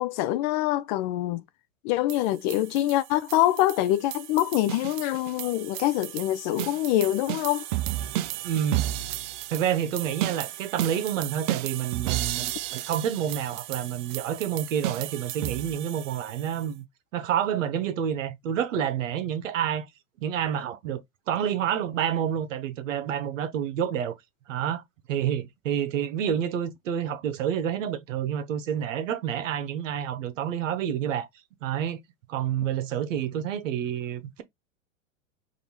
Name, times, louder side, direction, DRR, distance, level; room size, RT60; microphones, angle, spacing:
voice 1, 0.0-1.4 1.8-7.6, left 14 dB, 35° left, 0.4 m, -25 dB
sound 1, 2.1-16.6, right 14 dB, 40° right, 0.5 m, -33 dB
voice 2, 8.4-8.8 9.5-16.8 17.1-19.9 20.2-24.2 24.5-24.8 25.1-31.3 31.6-32.0 32.3-34.4, right 9 dB, 65° right, 1.0 m, -28 dB
5.2 x 2.7 x 2.9 m
hypercardioid pair, 105°, 41 cm